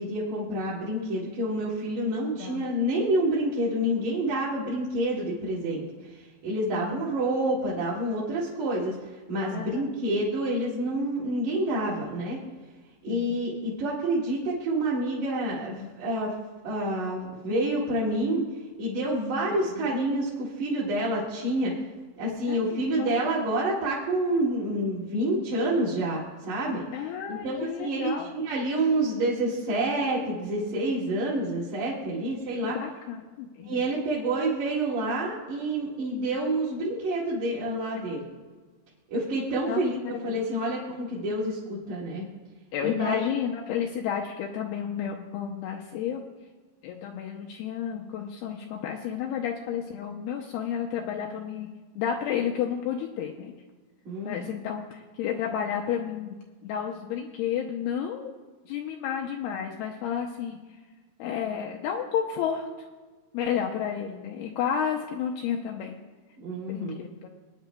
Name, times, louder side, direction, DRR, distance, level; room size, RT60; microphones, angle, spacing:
voice 1, 0.0-5.8 6.4-8.9 9.3-12.4 13.0-16.3 16.6-18.4 18.8-21.7 22.2-26.2 26.5-26.8 27.3-32.8 33.6-38.2 39.1-42.2 42.8-43.3 54.1-54.4 66.4-66.9, right 1 dB, 45° right, -10 dB, 3.1 m, -28 dB
voice 2, 2.4-2.7 6.7-7.0 9.5-9.9 13.1-13.4 19.7-19.9 22.5-23.3 26.9-28.3 32.6-33.8 39.7-40.4 42.7-46.2 46.8-51.7 52.0-53.5 54.3-58.3 58.7-60.6 61.2-62.7 63.3-66.0 66.7-67.3, left 8 dB, 80° left, 0 dB, 2.4 m, -31 dB
22.5 x 10.0 x 2.2 m, 1.3 s
omnidirectional pair, 5.2 m